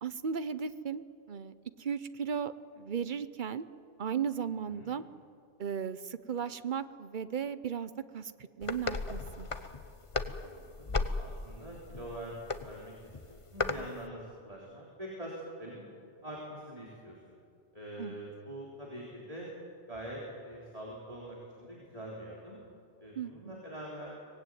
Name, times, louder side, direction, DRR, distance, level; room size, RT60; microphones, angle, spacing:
voice 1, 0.0-3.7 4.0-5.0 5.6-8.3 8.6-9.5 18.0-18.2 23.2-23.6, right 7 dB, 45° right, 13 dB, 0.9 m, -36 dB
sound 1, 8.6-13.9, left 3 dB, 30° left, 1.0 m, -36 dB
voice 2, 10.4-15.9 16.2-17.3 17.7-19.5 19.9-22.6 23.0-24.1, right 1 dB, 30° right, -4 dB, 3.9 m, -44 dB
24.5 x 19.0 x 9.3 m, 2.3 s
omnidirectional pair, 1.2 m